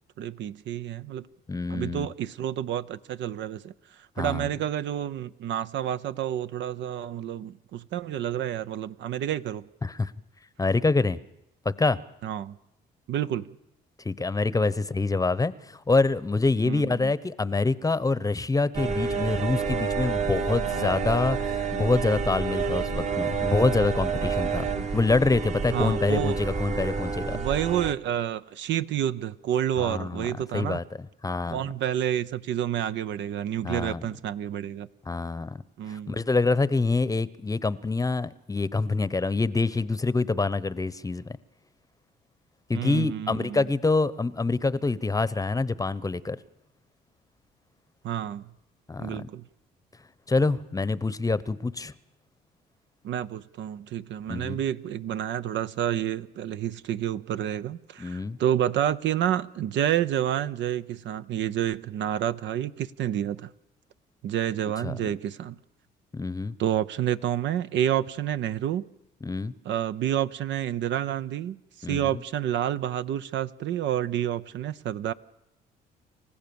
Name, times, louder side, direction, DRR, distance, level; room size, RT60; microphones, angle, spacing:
voice 1, 0.2-1.3 1.7-3.7 4.2-9.7 12.2-12.6 13.1-13.6 16.6-17.1 25.7-26.4 27.3-30.8 31.5-34.9 35.8-36.2 42.7-43.7 48.0-48.5 49.0-49.5 53.0-63.5 64.2-65.6 66.6-68.9 69.6-75.1, right 11 dB, 70° right, 0.7 m, -29 dB
voice 2, 1.5-2.1 4.2-4.5 9.8-10.1 10.6-11.2 11.6-12.0 14.0-21.4 21.7-24.7 24.9-27.4 29.8-30.3 30.5-30.8 31.2-31.6 33.6-34.0 35.1-35.6 35.9-41.4 42.7-46.4 48.9-49.3 50.3-51.9 54.3-54.6 58.0-58.4 64.8-65.0 66.1-66.5 69.2-69.5 71.8-72.2, left 3 dB, 20° left, 0.9 m, -26 dB
sound 1, 18.7-27.9, right 5 dB, 35° right, 1.3 m, -29 dB
29.0 x 15.5 x 7.0 m
supercardioid pair, 80°, 20 cm